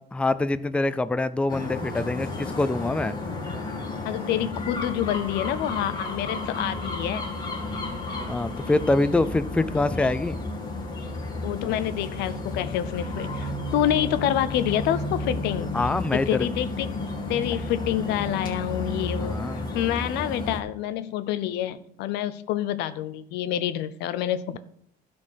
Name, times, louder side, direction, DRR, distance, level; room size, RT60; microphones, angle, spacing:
voice 1, 0.1-3.1 8.3-10.4 15.7-16.5 19.2-19.7, left 2 dB, 5° left, 14 dB, 0.4 m, -25 dB
sound 1, 1.5-20.6, left 2 dB, 25° left, 2.7 m, -32 dB
voice 2, 4.0-7.3 11.4-15.8 16.1-16.9 17.3-19.4 19.7-24.6, left 11 dB, 90° left, 14 dB, 0.6 m, -27 dB
12.0 x 4.4 x 6.4 m, 0.69 s
cardioid pair, 110°, 17 cm